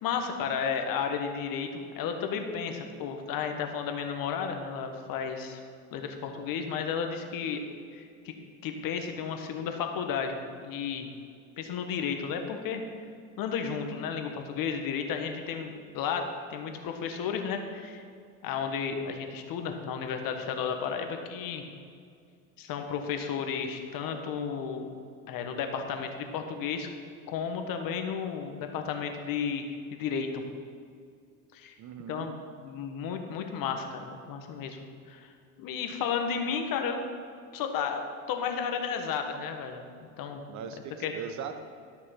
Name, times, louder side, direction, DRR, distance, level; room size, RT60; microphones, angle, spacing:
voice 1, 0.0-5.6 5.9-7.6 7.9-8.3 8.6-10.4 10.6-11.1 11.6-12.8 13.4-18.0 18.4-21.6 22.6-24.9 25.3-26.9 27.3-29.6 29.9-30.4 31.5-31.7 32.1-34.8 35.1-35.3 35.6-37.0 37.5-38.0 38.3-39.8 40.2-40.4 41.0-41.1, left 6 dB, 55° left, 5 dB, 1.4 m, -33 dB
voice 2, 31.8-32.3 40.5-41.6, right 7 dB, 45° right, 9 dB, 1.0 m, -40 dB
12.5 x 6.4 x 5.9 m, 2.3 s
supercardioid pair, 95°, 40 cm